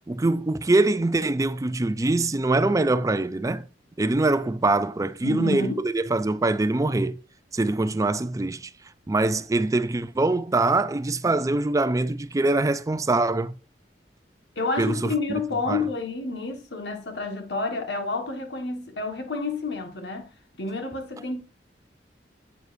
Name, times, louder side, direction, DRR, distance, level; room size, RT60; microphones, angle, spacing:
voice 1, 0.1-3.7 4.0-7.2 7.5-8.7 9.1-13.5 14.8-15.1 15.7-15.9, right 2 dB, 20° right, 0.4 m, -23 dB
voice 2, 5.2-5.8 14.5-20.3 20.6-21.4, left 3 dB, 75° left, 1.6 m, -29 dB
9.2 x 8.2 x 2.6 m
head